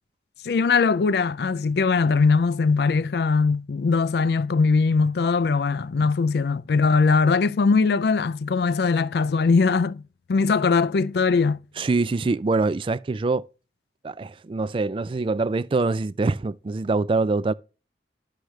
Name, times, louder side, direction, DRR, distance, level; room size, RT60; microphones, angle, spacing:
voice 1, 0.4-10.0 10.3-11.6, left 4 dB, 65° left, 0.4 m, -21 dB
voice 2, 11.8-13.4 14.0-17.5, right 3 dB, 30° right, 0.3 m, -24 dB
11.5 x 6.4 x 3.2 m
head